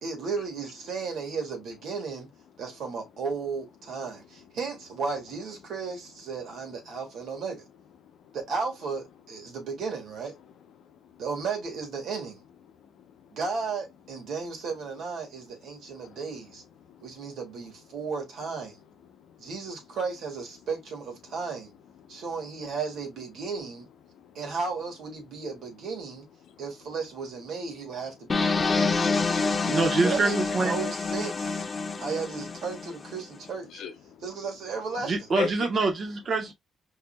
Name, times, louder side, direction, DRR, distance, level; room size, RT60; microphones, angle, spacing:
voice 1, 0.0-2.3 2.6-7.6 8.3-10.3 11.2-12.4 13.3-16.6 17.0-18.8 19.4-21.7 22.1-23.9 24.3-26.2 26.6-29.2 30.0-31.6 32.0-33.8 34.2-35.1, right 5 dB, 75° right, 1.6 m, -34 dB
voice 2, 12.9-13.3 15.9-16.2 16.9-17.3 19.2-19.4 22.1-22.2 24.1-24.4 26.5-26.6 31.8-32.0 33.7-34.2 35.3-35.7, left 6 dB, 80° left, 0.7 m, -38 dB
sound 1, 28.3-33.2, left 4 dB, 35° left, 0.5 m, -27 dB
voice 3, 29.7-30.7 35.0-36.5, right 3 dB, 50° right, 1.0 m, -25 dB
4.7 x 2.8 x 2.2 m
cardioid pair, 90°, 0 cm